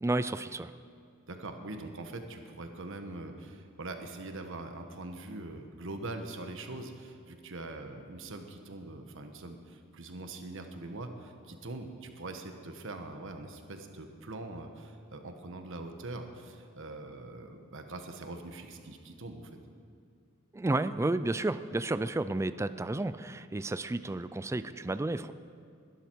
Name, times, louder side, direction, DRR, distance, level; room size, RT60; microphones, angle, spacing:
voice 1, 0.0-0.7 20.5-25.3, right 2 dB, 15° right, 13 dB, 0.4 m, -31 dB
voice 2, 1.3-19.5, right 2 dB, 65° right, 6 dB, 1.3 m, -43 dB
21.0 x 12.0 x 4.6 m, 2.3 s
head